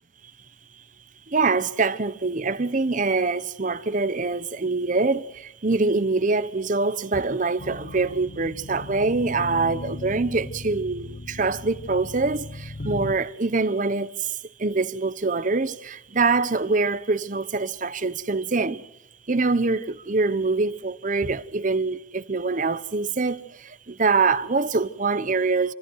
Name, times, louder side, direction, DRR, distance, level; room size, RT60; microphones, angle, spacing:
voice 1, 1.3-14.3 14.6-18.8 19.3-25.7, right 3 dB, 40° right, 0.9 m, -24 dB
sound 1, 7.6-13.1, left 2 dB, 55° left, 1.3 m, -37 dB
28.0 x 25.5 x 4.7 m
head